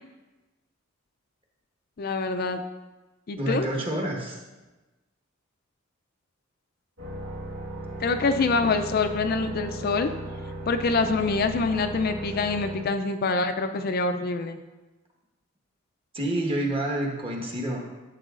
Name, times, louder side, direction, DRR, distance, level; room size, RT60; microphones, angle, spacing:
voice 1, 2.0-2.6 3.3-3.7 8.0-10.1 10.7-14.6, left 3 dB, 45° left, 7 dB, 0.4 m, -25 dB
voice 2, 3.4-4.4 16.1-17.8, right 1 dB, 25° right, 0 dB, 1.3 m, -28 dB
sound 1, 7.0-12.7, right 1 dB, 75° right, 2.1 m, -36 dB
12.0 x 7.4 x 2.5 m, 1.1 s
head